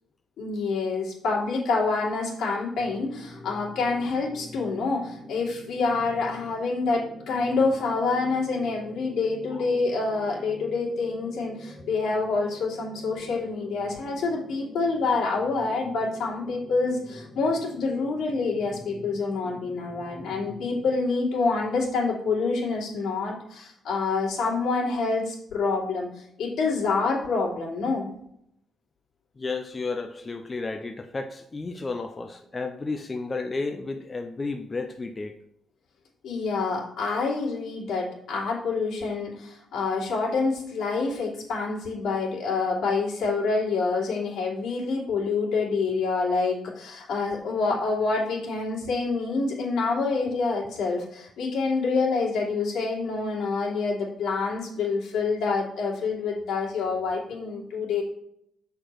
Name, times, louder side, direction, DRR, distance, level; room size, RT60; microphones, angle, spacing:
voice 1, 0.4-28.1 36.2-58.0, left 4 dB, 80° left, -4 dB, 2.5 m, -27 dB
sound 1, 2.7-20.9, left 1 dB, 40° left, 1.6 m, -46 dB
voice 2, 29.4-35.4, left 3 dB, 20° left, 5 dB, 0.4 m, -32 dB
6.8 x 4.4 x 4.5 m, 0.73 s
cardioid pair, 150°, 0 cm